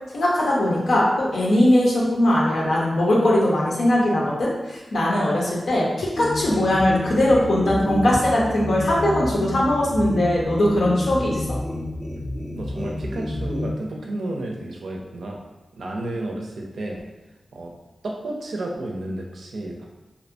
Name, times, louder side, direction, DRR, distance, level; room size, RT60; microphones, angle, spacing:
voice 1, 0.1-11.4, left 1 dB, 90° left, -4 dB, 0.7 m, -20 dB
sound 1, 6.2-13.7, left 1 dB, 15° left, 0.3 m, -30 dB
voice 2, 12.5-15.4 15.7-17.1 17.5-17.7 18.0-19.8, right 1 dB, 85° right, 0 dB, 0.4 m, -32 dB
2.6 x 2.1 x 2.6 m, 1.1 s
wide cardioid pair, 130°, 0 cm